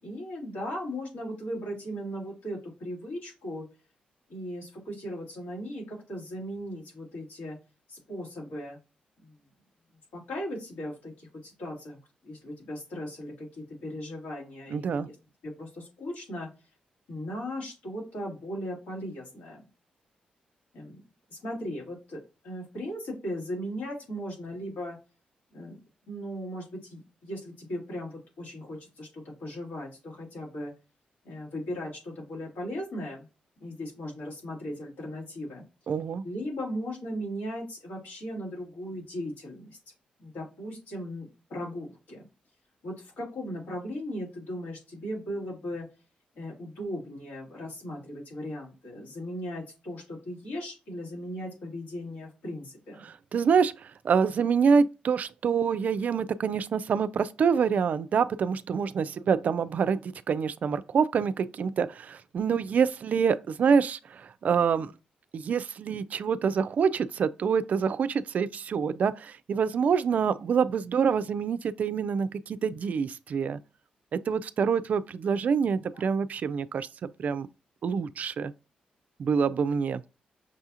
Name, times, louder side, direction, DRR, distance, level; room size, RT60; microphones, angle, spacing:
voice 1, 0.0-3.7 4.3-7.6 7.9-8.8 9.2-9.4 10.1-15.2 15.4-16.5 17.1-19.7 20.7-21.0 21.3-25.0 25.5-25.8 26.1-30.7 31.2-33.3 33.6-35.6 36.2-39.8 40.2-42.2 42.8-45.9 46.3-53.0 75.9-76.0, equal, 85° left, 2.3 m, -37 dB
voice 2, 14.7-15.1 35.9-36.2 53.0-64.9 65.3-73.6 74.1-77.5 77.8-78.5 79.2-80.0, right 6 dB, 60° right, 0.3 m, -26 dB
6.1 x 2.4 x 2.8 m
cardioid pair, 80°, 3 cm